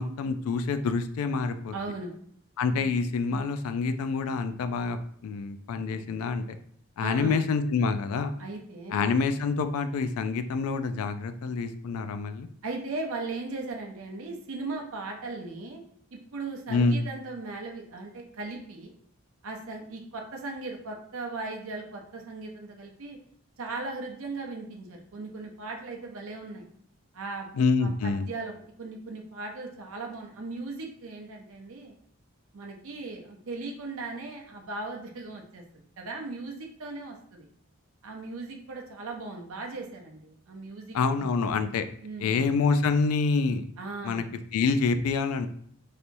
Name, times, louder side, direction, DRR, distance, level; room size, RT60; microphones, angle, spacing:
voice 1, 0.0-1.7 2.6-5.0 5.2-6.6 7.0-8.3 8.9-12.5 16.7-17.0 27.6-28.2 40.9-41.9 42.2-43.6 44.0-44.2 44.5-45.5, left 4 dB, 80° left, 9 dB, 0.3 m, -27 dB
voice 2, 1.7-2.1 2.7-2.9 7.0-7.5 8.4-9.1 12.6-15.8 16.1-18.9 19.4-23.2 23.6-26.6 27.1-27.5 27.8-28.5 28.8-31.9 32.5-35.6 36.0-37.5 38.0-41.3 42.0-42.4 43.8-44.3, right 3 dB, 70° right, 1 dB, 0.6 m, -38 dB
3.3 x 2.8 x 2.6 m, 0.62 s
head